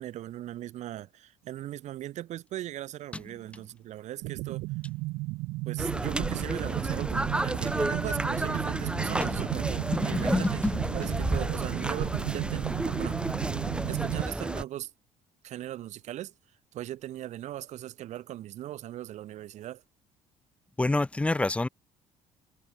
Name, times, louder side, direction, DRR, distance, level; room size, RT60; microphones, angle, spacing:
voice 1, 0.0-4.7 5.6-10.5 10.9-13.2 13.9-14.9 15.4-16.3 16.7-19.8, right 13 dB, 60° right, 0.9 m, -39 dB
sound 1, 4.2-14.2, right 22 dB, 85° right, 0.5 m, -34 dB
sound 2, 5.8-14.6, right 1 dB, 5° right, 1.3 m, -31 dB
sound 3, 7.9-14.2, left 14 dB, 70° left, 4.5 m, -50 dB
voice 2, 9.9-10.9 20.8-21.7, left 2 dB, 10° left, 0.4 m, -27 dB
cardioid pair, 110°, 14 cm